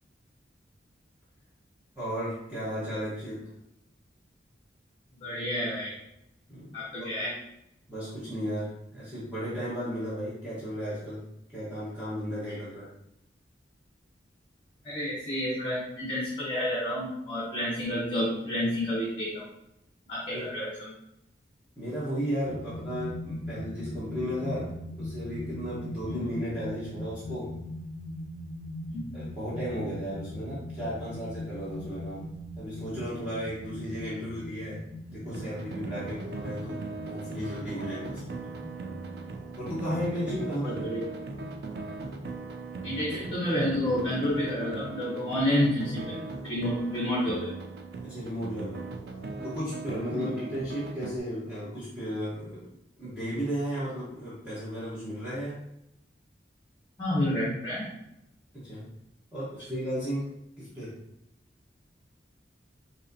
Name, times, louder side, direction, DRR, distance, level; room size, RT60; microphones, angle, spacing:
voice 1, 2.0-3.4 6.5-7.1 7.9-11.2 11.5-12.9 20.3-20.5 21.8-27.5 29.1-32.3 32.5-34.8 35.1-38.4 39.6-40.9 48.0-48.8 49.4-52.6 53.0-55.6 58.5-58.8 59.3-60.3 60.6-60.9, equal, 10° right, -12 dB, 1.1 m, -34 dB
voice 2, 5.2-5.9 6.7-7.3 14.8-19.4 20.1-20.9 26.1-26.2 28.9-29.0 40.6-41.0 42.8-47.5 50.1-50.3 57.0-57.9, left 1 dB, 25° left, -7 dB, 0.9 m, -30 dB
sound 1, 22.4-42.3, left 1 dB, 30° right, 0.9 m, -41 dB
sound 2, 35.3-51.2, right 3 dB, 60° right, 0.4 m, -39 dB
4.0 x 2.8 x 2.7 m, 0.83 s
head